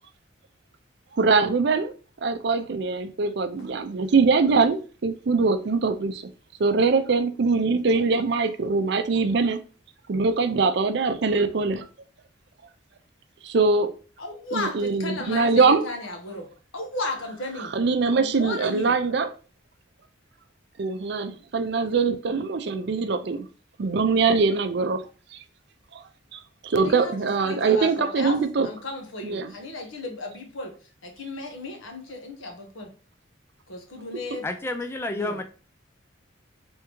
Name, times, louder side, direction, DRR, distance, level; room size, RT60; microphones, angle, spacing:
voice 1, 1.1-1.9 2.2-6.3 6.6-9.6 10.1-11.8 13.4-13.9 14.5-15.8 17.6-19.3 20.8-23.5 23.8-25.0 25.3-25.4 25.9-26.0 26.3-28.7 29.2-29.5, right 4 dB, 55° right, 0.4 m, -23 dB
voice 2, 14.2-16.5 16.7-17.7 18.1-18.9 26.8-27.1 27.4-28.4 28.6-30.7 31.0-32.9 33.7-34.4 35.1-35.4, left 2 dB, 85° left, 1.1 m, -34 dB
voice 3, 34.4-35.4, left 2 dB, 10° left, 0.3 m, -30 dB
3.5 x 3.5 x 3.0 m
head